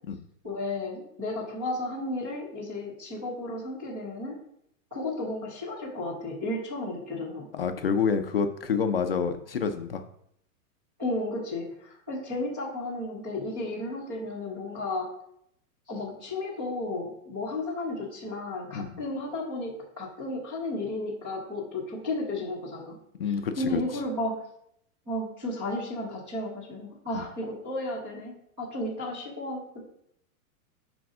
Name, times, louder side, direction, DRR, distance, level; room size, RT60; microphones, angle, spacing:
voice 1, 0.4-4.4 4.9-7.5 11.0-15.1 15.9-22.9 23.6-24.4 25.1-29.6, left 2 dB, 5° right, -6 dB, 0.5 m, -33 dB
voice 2, 7.5-10.0 18.7-19.0 23.2-23.8 27.1-27.2, left 6 dB, 40° left, 7 dB, 0.5 m, -28 dB
6.0 x 5.2 x 6.0 m, 0.73 s
supercardioid pair, 180°, 45 cm